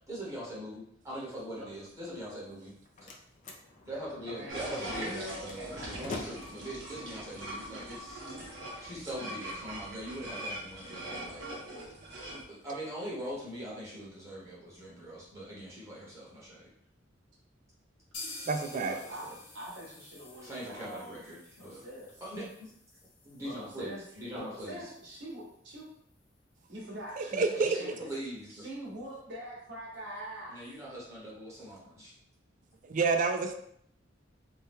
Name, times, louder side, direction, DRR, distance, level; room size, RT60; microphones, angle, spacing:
voice 1, 0.1-2.8 3.0-3.1 3.8-8.2 8.8-11.4 12.3-16.7 18.9-19.4 20.4-21.8 22.2-22.7 23.2-24.8 27.3-28.7 30.5-32.1, equal, 15° right, -7 dB, 1.0 m, -42 dB
Slam, 2.5-8.5, left 3 dB, 40° left, 0.4 m, -47 dB
voice 2, 4.3-5.9 18.7-19.3 19.5-21.2 21.6-22.2 23.4-24.0 24.3-25.9 26.7-28.0 28.6-30.6, right 1 dB, 65° right, -4 dB, 1.1 m, -43 dB
sound 1, 4.5-12.4, right 1 dB, 90° right, 1.0 m, -42 dB
sound 2, 18.1-25.9 26.2-26.3 26.6-26.7 27.1-27.2, left 2 dB, 80° left, 1.0 m, -50 dB
voice 3, 18.5-19.0 27.2-27.8 32.9-33.5, right 4 dB, 40° right, 7 dB, 0.3 m, -28 dB
2.7 x 2.2 x 3.5 m, 0.69 s
head